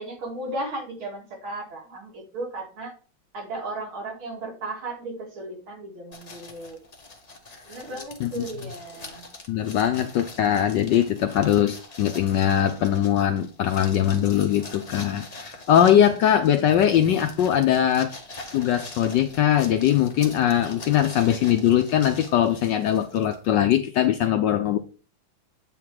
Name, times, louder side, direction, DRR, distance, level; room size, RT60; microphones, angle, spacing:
voice 1, 0.0-2.9 3.3-6.8 7.7-9.2, right 2 dB, 75° right, 2.9 m, -35 dB
sound 1, 6.1-23.6, left 2 dB, 35° left, 0.6 m, -44 dB
voice 2, 9.5-18.1 18.5-24.8, left 10 dB, 75° left, 1.0 m, -21 dB
8.5 x 3.6 x 4.6 m
omnidirectional pair, 2.4 m